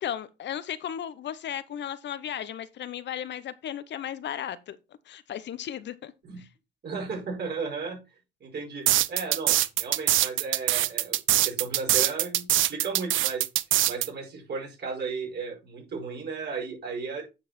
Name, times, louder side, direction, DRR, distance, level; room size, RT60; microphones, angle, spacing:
voice 1, 0.0-4.8 5.1-6.1 6.4-6.5, left 10 dB, 65° left, 0.8 m, -35 dB
voice 2, 6.8-8.0 8.4-13.4 13.8-17.3, right 4 dB, 55° right, 5.3 m, -35 dB
sound 1, 8.9-14.1, right 14 dB, 75° right, 0.6 m, -23 dB
9.4 x 4.8 x 4.3 m
cardioid pair, 90°, 20 cm